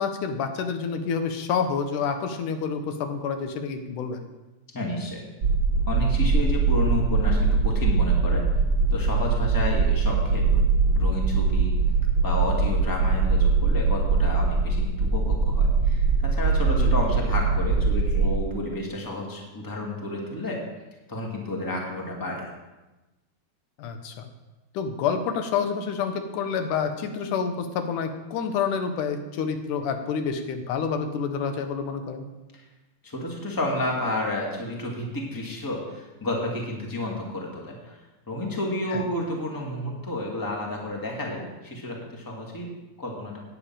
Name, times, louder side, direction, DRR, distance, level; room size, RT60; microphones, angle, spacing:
voice 1, 0.0-4.2 16.7-16.9 23.8-24.3 24.7-32.3 38.9-39.0, left 6 dB, 80° left, 7 dB, 2.4 m, -28 dB
voice 2, 4.7-5.2 5.9-8.4 8.9-10.6 10.9-11.7 12.2-20.6 21.1-22.4 32.5-32.6 33.0-38.0 38.3-43.4, left 1 dB, 10° left, -1 dB, 1.7 m, -31 dB
sound 1, 5.4-18.4, right 4 dB, 45° right, 1.9 m, -22 dB
9.5 x 6.9 x 8.8 m, 1.1 s
omnidirectional pair, 3.6 m